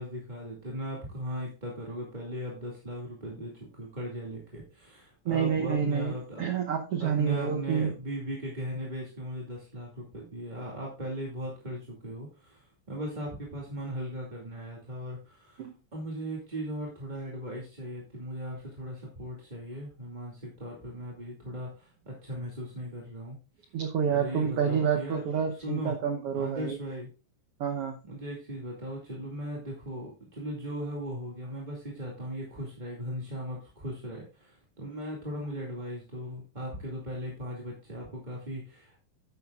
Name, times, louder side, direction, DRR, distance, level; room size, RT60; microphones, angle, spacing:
voice 1, 0.0-6.5 7.0-23.4 24.1-25.2 25.6-26.0 26.3-27.1 28.0-39.0, equal, 15° right, -3 dB, 1.6 m, -38 dB
voice 2, 5.2-7.9 15.6-15.7 23.7-26.8 27.6-28.0, right 7 dB, 90° right, 5 dB, 1.2 m, -28 dB
11.0 x 9.2 x 2.4 m, 0.33 s
omnidirectional pair, 4.0 m